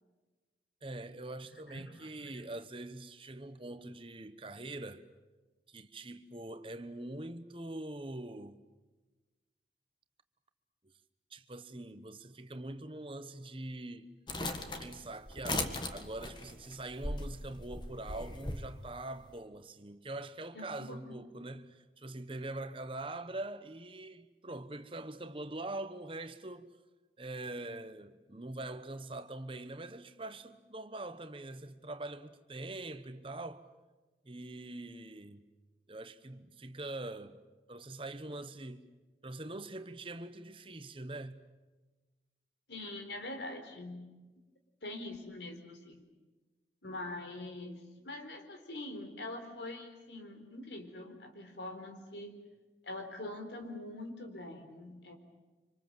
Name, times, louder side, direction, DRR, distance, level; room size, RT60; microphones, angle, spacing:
voice 1, 0.8-5.1 5.7-8.6 11.3-14.1 14.8-26.7 27.2-33.7 34.2-35.4 35.9-37.4 37.7-38.9 39.2-41.4, right 2 dB, 30° right, 1.1 m, -43 dB
voice 2, 1.7-2.3 20.5-21.2 42.7-44.1 44.8-46.0 46.8-52.4 52.8-55.1, left 2 dB, 85° left, 4.1 m, -44 dB
sound 1, 14.3-18.6, left 2 dB, 25° left, 1.8 m, -38 dB
26.5 x 26.0 x 7.8 m
head